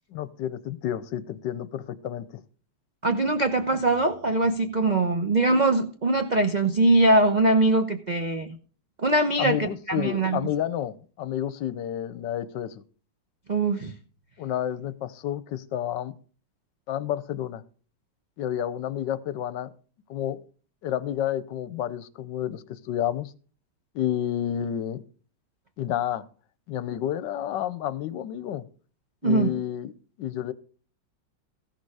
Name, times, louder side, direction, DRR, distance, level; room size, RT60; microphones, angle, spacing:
voice 1, 0.1-2.4 9.4-12.8 14.4-16.1 16.9-17.6 18.4-19.7 20.1-20.4 20.8-23.3 23.9-25.0 25.8-26.2 26.7-28.7 29.2-29.9 30.2-30.5, left 11 dB, 80° left, 15 dB, 1.3 m, -30 dB
voice 2, 3.0-8.5 9.0-10.4 13.5-13.9 29.2-29.5, right 2 dB, 65° right, 7 dB, 0.4 m, -22 dB
15.0 x 6.6 x 4.8 m, 0.41 s
omnidirectional pair, 2.0 m